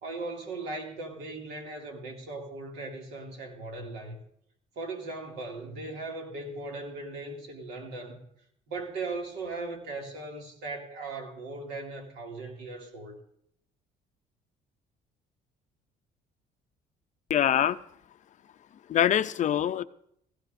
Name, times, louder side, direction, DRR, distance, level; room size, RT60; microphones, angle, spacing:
voice 1, 0.0-4.2 4.8-8.2 8.7-13.1, right 3 dB, 90° right, 2.4 m, -38 dB
voice 2, 17.3-17.8 18.9-19.8, left 10 dB, 45° left, 0.5 m, -24 dB
17.0 x 15.5 x 2.6 m
cardioid pair, 110°, 17 cm